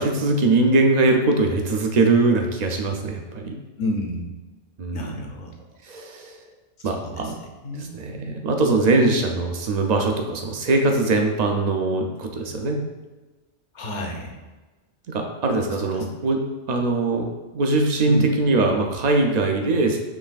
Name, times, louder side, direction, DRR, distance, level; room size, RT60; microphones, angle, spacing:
voice 1, 0.0-3.5 4.8-5.2 5.8-6.4 6.8-7.4 7.8-12.8 15.1-16.4 16.7-17.3 17.5-20.0, right 3 dB, 65° right, 3 dB, 0.4 m, -21 dB
voice 2, 3.8-4.3 4.9-5.5 6.8-7.3 7.6-7.9 13.7-14.3 15.9-16.1 18.1-18.3, left 1 dB, 50° left, 1 dB, 0.6 m, -30 dB
6.2 x 3.1 x 2.4 m, 1.2 s
omnidirectional pair, 1.3 m